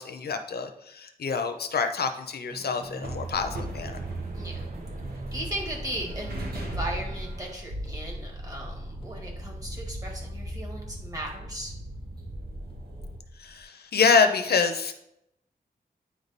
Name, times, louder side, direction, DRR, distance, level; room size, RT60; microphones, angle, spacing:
voice 1, 0.0-4.0 13.4-14.9, left 5 dB, 90° left, 7 dB, 0.7 m, -26 dB
sound 1, 2.5-7.5, right 2 dB, 50° right, 0.8 m, -45 dB
sound 2, 2.8-13.2, right 1 dB, 80° right, 1.3 m, -37 dB
voice 2, 4.3-4.7 5.1-11.7, right 1 dB, 20° right, -1 dB, 1.8 m, -37 dB
sound 3, 7.7-13.6, left 1 dB, 35° left, 1.2 m, -44 dB
9.4 x 3.4 x 4.1 m, 0.80 s
wide cardioid pair, 110°, 16 cm